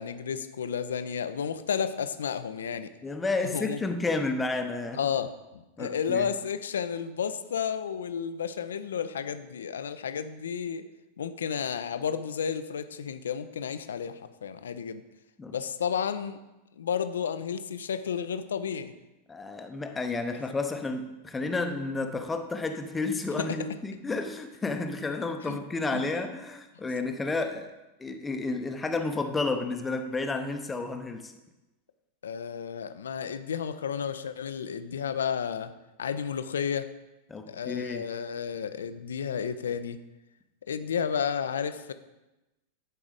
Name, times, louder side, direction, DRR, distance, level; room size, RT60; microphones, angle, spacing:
voice 1, 0.0-2.9 3.5-3.8 4.9-10.8 11.2-15.0 15.5-16.4 16.8-18.9 23.4-23.6 25.4-25.6 25.9-26.0 32.2-35.7 36.0-36.9 37.5-40.0 40.7-41.9, left 7 dB, 65° left, 12 dB, 0.5 m, -32 dB
voice 2, 3.0-5.0 5.8-6.3 15.4-15.6 19.3-27.7 28.0-31.3 37.3-38.1, left 3 dB, 10° left, 6 dB, 0.8 m, -31 dB
11.0 x 4.7 x 5.1 m, 1.0 s
figure-of-eight pair, 90°, 0 cm